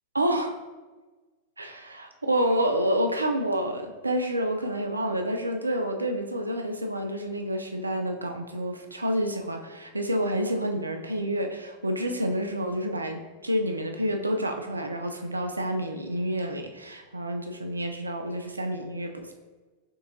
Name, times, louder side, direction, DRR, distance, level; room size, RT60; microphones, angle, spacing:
voice 1, 0.1-0.6 1.6-19.3, equal, 80° right, 5 dB, 0.4 m, -28 dB
5.3 x 3.4 x 2.6 m, 1.3 s
figure-of-eight pair, 90°, 0 cm